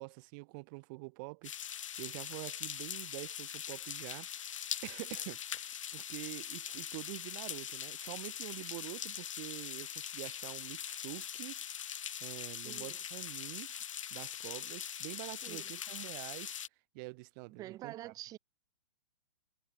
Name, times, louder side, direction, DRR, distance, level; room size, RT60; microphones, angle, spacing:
voice 1, 0.0-11.9 12.2-13.7 14.1-16.6 16.9-18.1, right 29 dB, 40° right, 1.1 m, -46 dB
sound 1, 1.4-16.7, left 9 dB, 80° left, 0.7 m, -42 dB
voice 2, 12.6-13.0 15.4-15.8 17.6-18.4, right 14 dB, 20° right, 0.7 m, -46 dB
hypercardioid pair, 130°, 16 cm